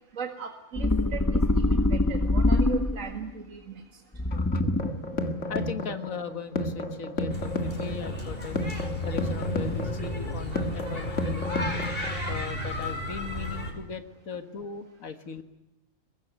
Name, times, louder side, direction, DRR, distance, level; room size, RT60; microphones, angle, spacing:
voice 1, 0.1-3.8, right 7 dB, 75° right, 4 dB, 2.2 m, -38 dB
sound 1, 0.8-3.2 4.2-5.1, left 2 dB, 15° left, 1.0 m, -24 dB
sound 2, 4.3-12.3, left 2 dB, 65° left, 2.4 m, -32 dB
voice 2, 5.5-8.6 9.0-11.7 12.3-15.4, left 6 dB, 90° left, 8 dB, 2.0 m, -38 dB
sound 3, 7.3-13.7, left 1 dB, 45° left, 5.1 m, -33 dB
23.5 x 21.5 x 9.3 m, 0.92 s
omnidirectional pair, 1.4 m